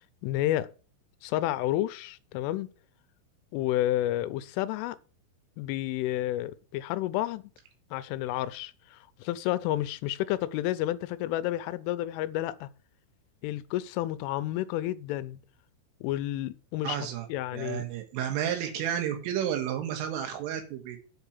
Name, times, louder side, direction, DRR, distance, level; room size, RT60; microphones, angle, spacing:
voice 1, 0.2-0.7 1.2-2.7 3.5-5.0 5.6-7.4 7.9-12.7 13.4-15.4 16.0-17.0 17.3-17.9, left 14 dB, 85° left, 3.0 m, -30 dB
voice 2, 16.8-21.0, right 10 dB, 80° right, 4.1 m, -32 dB
8.0 x 5.8 x 7.1 m
omnidirectional pair, 5.7 m